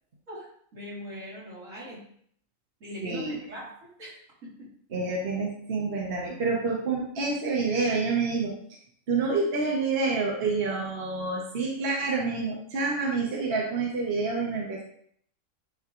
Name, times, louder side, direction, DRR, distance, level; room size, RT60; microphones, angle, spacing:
voice 1, 0.3-2.1 2.8-4.1 4.4-4.7, equal, 80° right, -8 dB, 3.1 m, -41 dB
voice 2, 3.0-3.4 4.9-8.6 9.1-14.8, right 4 dB, 50° right, -2 dB, 1.2 m, -28 dB
9.2 x 3.6 x 3.0 m, 0.64 s
omnidirectional pair, 1.3 m